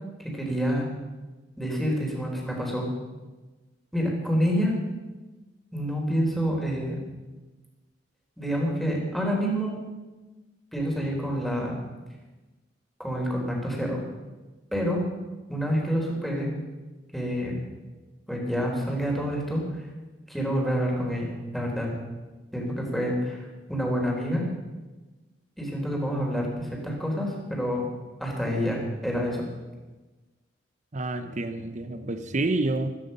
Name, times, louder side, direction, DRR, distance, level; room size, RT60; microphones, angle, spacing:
voice 1, 0.3-0.9 1.6-2.9 3.9-4.8 5.7-7.0 8.4-9.8 10.7-11.7 13.0-14.0 14.7-15.0 15.5-16.5 17.1-17.5 18.3-19.6 20.3-21.9 22.5-24.5 25.6-27.9 28.2-29.4, equal, ahead, -1 dB, 3.8 m, -27 dB
voice 2, 30.9-32.9, right 2 dB, 40° right, 9 dB, 0.8 m, -28 dB
15.0 x 13.5 x 5.5 m, 1.2 s
head